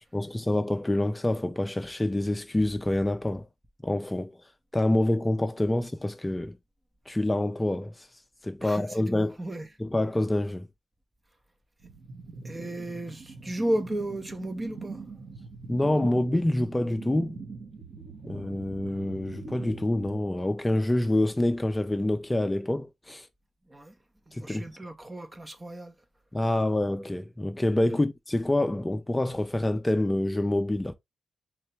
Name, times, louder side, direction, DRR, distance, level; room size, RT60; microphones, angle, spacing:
voice 1, 0.1-3.5 3.8-4.3 4.7-6.5 7.1-8.1 8.4-9.4 9.8-10.7 15.7-17.4 18.2-23.3 24.3-24.6 26.3-30.9, left 1 dB, 20° left, 0.6 m, -27 dB
voice 2, 8.6-9.7 12.4-15.0 23.7-24.0 24.3-25.9, right 1 dB, 25° right, 0.9 m, -34 dB
sound 1, 11.8-20.3, right 4 dB, 65° right, 1.6 m, -42 dB
3.9 x 2.9 x 3.3 m
hypercardioid pair, 40°, 0 cm